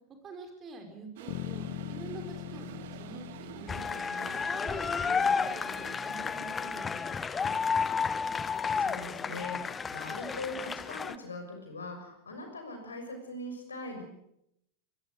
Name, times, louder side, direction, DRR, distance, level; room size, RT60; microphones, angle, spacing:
voice 1, 0.2-3.3 3.5-4.3 4.6-7.5, right 3 dB, 25° right, 5 dB, 5.3 m, -46 dB
Toilet flush, 1.2-6.4, right 11 dB, 55° right, 1.5 m, -48 dB
sound 1, 1.3-5.2, left 16 dB, 45° left, 2.2 m, -42 dB
sound 2, 3.7-11.2, left 5 dB, 15° left, 1.0 m, -32 dB
voice 2, 8.5-14.0, left 2 dB, 75° left, 5 dB, 6.5 m, -41 dB
24.5 x 22.0 x 6.6 m, 0.79 s
figure-of-eight pair, 90°, 0 cm